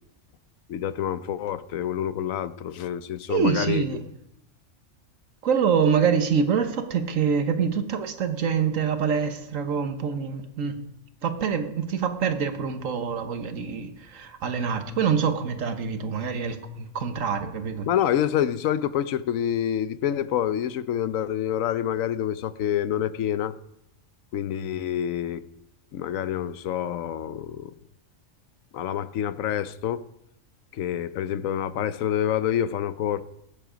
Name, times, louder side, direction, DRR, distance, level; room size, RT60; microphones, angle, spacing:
voice 1, 0.7-3.9 17.9-23.5 24.3-25.4 25.9-27.7 28.7-30.0 30.7-33.2, left 10 dB, 90° left, 15 dB, 1.1 m, -27 dB
voice 2, 3.3-4.0 5.4-10.8 11.2-17.9, right 6 dB, 80° right, 8 dB, 1.4 m, -25 dB
18.5 x 7.8 x 5.0 m, 0.83 s
omnidirectional pair, 1.3 m